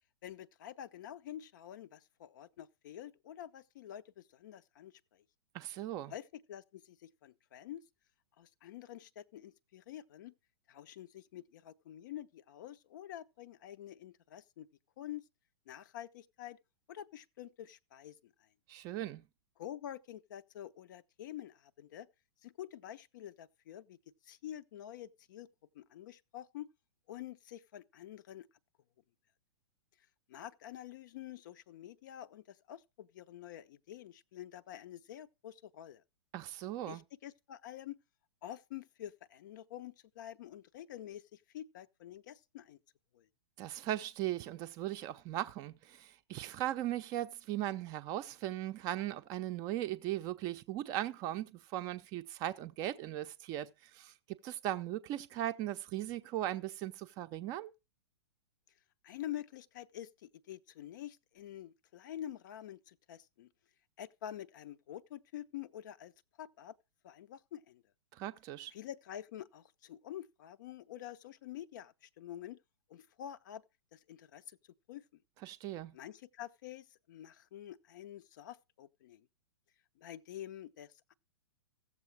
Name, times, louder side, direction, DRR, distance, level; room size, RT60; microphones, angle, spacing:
voice 1, 0.2-5.2 6.1-7.8 8.4-10.3 10.7-14.7 15.0-15.3 15.7-16.6 16.9-18.3 19.6-22.1 22.4-24.0 24.2-25.5 25.7-26.7 27.1-28.5 30.3-36.0 36.8-38.0 38.4-42.8 43.1-43.3 59.0-63.5 64.0-66.1 66.4-66.8 67.0-67.8 68.7-72.6 72.9-73.6 73.9-74.6 74.9-75.0 75.9-79.3 80.0-81.1, left 11 dB, 45° left, 0.6 m, -47 dB
voice 2, 5.5-6.1 18.7-19.2 36.3-37.0 43.6-57.7 68.1-68.7 75.4-76.0, right 13 dB, 25° right, 0.5 m, -38 dB
15.5 x 7.3 x 4.6 m
figure-of-eight pair, 110°, 14 cm